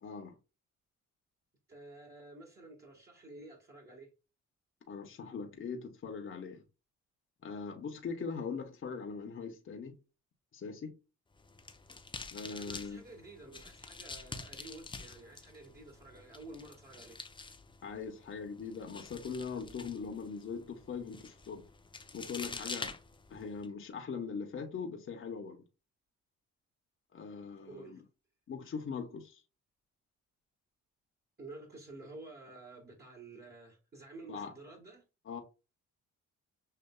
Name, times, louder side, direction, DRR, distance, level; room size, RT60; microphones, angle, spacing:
voice 1, 0.0-0.3 4.9-6.6 7.4-9.9 10.5-11.0 12.3-13.0 17.8-21.7 22.1-23.0 23.3-25.6 27.1-28.0 28.5-29.4 34.3-34.5 35.3-35.4, left 5 dB, 45° left, 1.0 m, -41 dB
voice 2, 1.7-4.1 12.5-17.2 27.7-28.0 31.4-35.0, right 2 dB, 35° right, 1.7 m, -51 dB
sound 1, 11.3-23.7, left 3 dB, 15° left, 0.6 m, -47 dB
6.7 x 2.7 x 2.3 m
cardioid pair, 90°, 30 cm